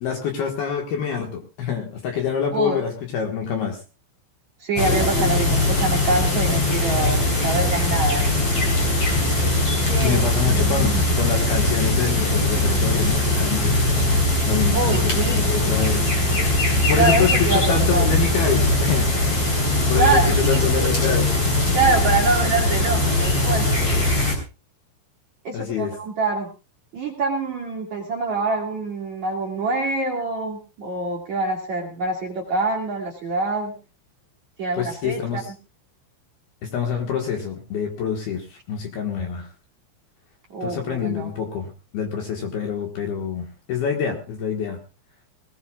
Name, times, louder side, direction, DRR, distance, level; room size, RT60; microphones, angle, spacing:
voice 1, 0.0-3.8 10.0-13.8 14.1-16.1 16.6-19.5 19.9-21.3 25.5-25.9 34.7-35.5 36.6-39.5 40.6-44.8, left 7 dB, 60° left, 2 dB, 3.0 m, -26 dB
voice 2, 4.6-8.2 9.8-11.0 14.7-15.4 17.0-18.1 20.0-20.7 21.7-23.7 25.4-26.5 26.9-33.7 34.6-35.4 40.5-41.3, right 3 dB, 45° right, -2 dB, 2.8 m, -25 dB
sound 1, 4.8-24.3, left 2 dB, 30° left, 4.5 m, -20 dB
20.5 x 18.0 x 2.4 m, 0.32 s
omnidirectional pair, 5.8 m